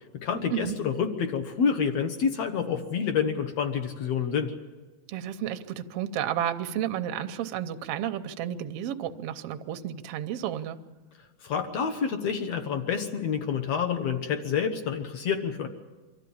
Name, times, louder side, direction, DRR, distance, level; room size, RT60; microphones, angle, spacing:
voice 1, 0.1-4.5 11.4-15.7, left 7 dB, 60° left, 6 dB, 1.9 m, -28 dB
voice 2, 5.1-10.8, right 10 dB, 75° right, 8 dB, 1.5 m, -32 dB
24.5 x 13.5 x 8.6 m, 1.3 s
omnidirectional pair, 3.7 m